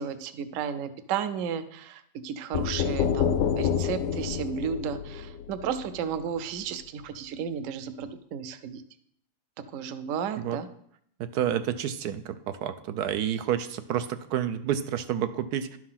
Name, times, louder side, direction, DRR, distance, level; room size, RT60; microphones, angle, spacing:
voice 1, 0.0-8.8 9.6-10.7, right 7 dB, 65° right, 11 dB, 0.9 m, -33 dB
sound 1, 2.5-6.3, left 8 dB, 65° left, 0.8 m, -28 dB
voice 2, 11.2-15.8, right 10 dB, 80° right, 10 dB, 1.1 m, -29 dB
11.5 x 4.7 x 5.7 m, 0.68 s
omnidirectional pair, 1.7 m